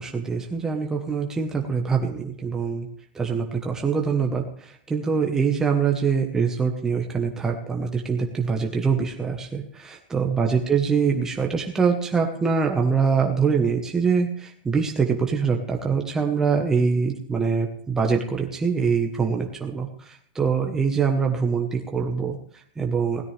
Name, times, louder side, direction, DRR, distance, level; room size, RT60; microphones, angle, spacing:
voice 1, 0.0-2.9 3.1-23.2, right 5 dB, 10° right, 2 dB, 1.1 m, -24 dB
17.0 x 13.0 x 3.4 m, 0.64 s
supercardioid pair, 160°, 5 cm